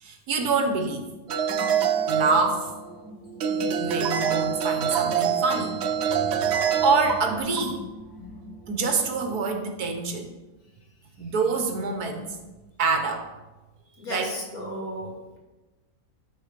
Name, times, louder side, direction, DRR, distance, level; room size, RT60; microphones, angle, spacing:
voice 1, 0.0-1.0 2.1-2.7 3.8-5.7 6.4-7.8 8.7-10.3 11.2-12.4 12.8-13.2 14.1-14.3, right 4 dB, 70° right, 5 dB, 1.5 m, -26 dB
sound 1, 1.3-3.0 3.4-7.4, right 7 dB, 85° right, 0.5 m, -25 dB
sound 2, 1.5-9.5, left 1 dB, ahead, 2.4 m, -43 dB
sound 3, 4.0-4.2 4.9-5.2 7.1-7.3 7.6-7.9, right 4 dB, 55° right, 1.9 m, -32 dB
voice 2, 14.0-15.4, equal, 60° left, -2 dB, 2.5 m, -35 dB
12.0 x 4.1 x 5.1 m, 1.1 s
omnidirectional pair, 1.8 m